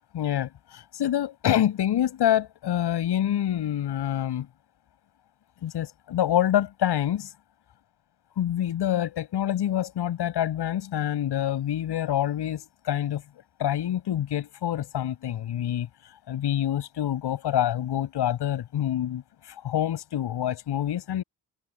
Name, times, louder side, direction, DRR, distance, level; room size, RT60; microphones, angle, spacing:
voice 1, 0.1-4.5 5.6-7.3 8.4-13.2 13.6-15.9 16.3-19.2 19.6-21.2, left 11 dB, 75° left, 7.4 m, -26 dB
hypercardioid pair, 45°, 41 cm